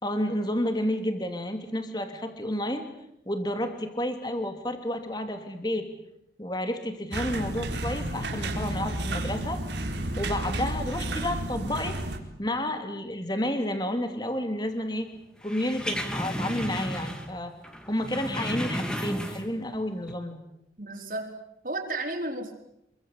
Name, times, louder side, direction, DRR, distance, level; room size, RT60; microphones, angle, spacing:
voice 1, 0.0-2.9 3.3-5.9 6.4-9.6 10.2-12.0 12.4-15.1 15.4-17.5 17.9-20.4, left 1 dB, 25° left, 7 dB, 3.0 m, -30 dB
sound 1, 7.1-12.2, right 1 dB, 85° right, 4.3 m, -31 dB
sound 2, 15.4-17.4 17.6-19.7 20.0-20.1, equal, 5° left, 2.9 m, -33 dB
voice 2, 20.8-21.3 21.6-22.6, right 2 dB, 50° right, 1 dB, 4.7 m, -33 dB
27.0 x 24.0 x 8.4 m, 0.79 s
head